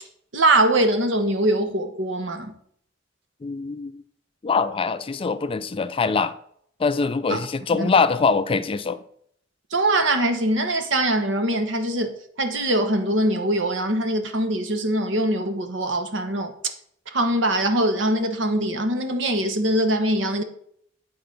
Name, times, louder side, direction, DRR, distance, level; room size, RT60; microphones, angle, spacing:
voice 1, 0.3-2.5 7.3-7.4 7.7-7.9 9.7-16.5 17.1-20.4, right 1 dB, 70° right, 1.1 m, -22 dB
voice 2, 3.4-4.0 4.4-6.3 6.8-9.0, left 4 dB, 30° left, 0.4 m, -23 dB
9.6 x 4.3 x 5.3 m
head